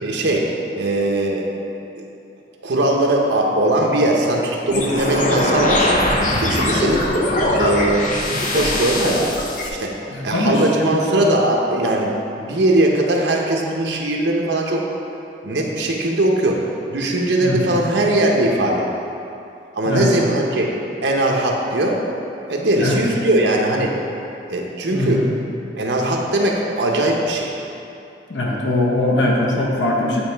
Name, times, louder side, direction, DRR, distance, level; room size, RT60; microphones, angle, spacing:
voice 1, 0.0-0.5 0.7-1.5 2.0-2.1 2.6-6.0 6.3-7.1 7.5-8.1 8.4-9.5 9.8-9.9 10.2-14.8 15.4-16.6 16.9-18.9 19.7-20.7 21.0-22.0 22.5-23.9 24.5-25.3 25.8-27.5, right 1 dB, 80° right, -1 dB, 0.8 m, -20 dB
sound 1, 4.7-9.7, left 1 dB, 45° left, 0.6 m, -20 dB
voice 2, 10.1-11.1 17.4-17.7 19.8-20.1 22.8-23.0 24.9-25.3 28.3-30.2, left 1 dB, 90° left, -2 dB, 0.9 m, -21 dB
8.8 x 3.1 x 4.5 m, 2.7 s
head